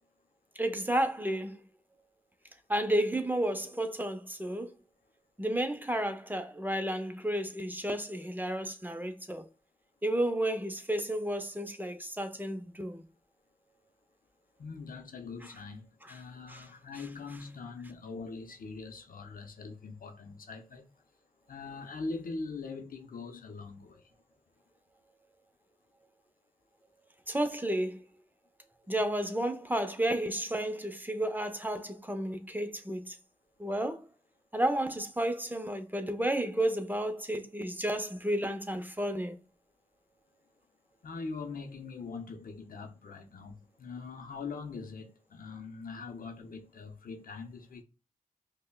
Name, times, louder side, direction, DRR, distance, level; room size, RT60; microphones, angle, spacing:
voice 1, 0.6-1.6 2.7-4.7 5.4-9.5 10.0-13.0 15.4-15.5 16.0-16.2 16.5-16.7 27.3-28.0 28.9-33.2 33.6-34.1 34.5-39.4, right 1 dB, 15° right, 0.6 m, -32 dB
voice 2, 14.6-20.9 21.5-24.0 41.0-47.8, left 4 dB, 80° left, 0.6 m, -42 dB
5.2 x 2.2 x 2.2 m
cardioid pair, 45°, 14 cm